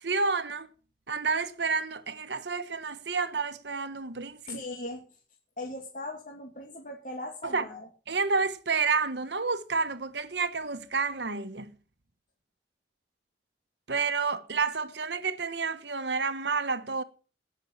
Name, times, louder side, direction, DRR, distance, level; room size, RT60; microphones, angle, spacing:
voice 1, 0.0-0.7 1.1-4.6 7.4-7.6 8.1-11.7 13.9-17.0, right 4 dB, 75° right, 1.2 m, -30 dB
voice 2, 4.5-5.0 5.6-7.9, left 2 dB, 45° left, 2.6 m, -39 dB
17.5 x 7.0 x 7.4 m
head